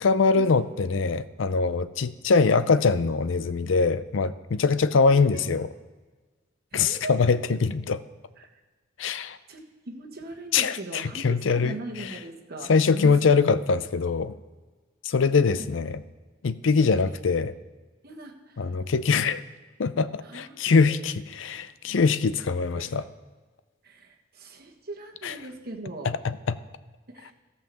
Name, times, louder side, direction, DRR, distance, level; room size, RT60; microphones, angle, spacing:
voice 1, 0.0-5.7 6.7-8.0 9.0-9.4 10.5-12.2 12.7-14.3 15.0-16.0 16.4-17.5 18.6-19.4 19.8-23.0 25.2-25.3 26.2-26.5, left 4 dB, 70° left, 14 dB, 0.5 m, -23 dB
voice 2, 4.9-5.4 6.7-7.2 8.4-8.6 9.5-13.1 13.7-13.8 16.7-17.0 18.0-18.7 20.2-21.0 22.7-23.1 23.8-26.1 27.1-27.3, right 2 dB, 55° right, 2 dB, 1.4 m, -40 dB
14.5 x 5.7 x 7.0 m, 1.4 s
head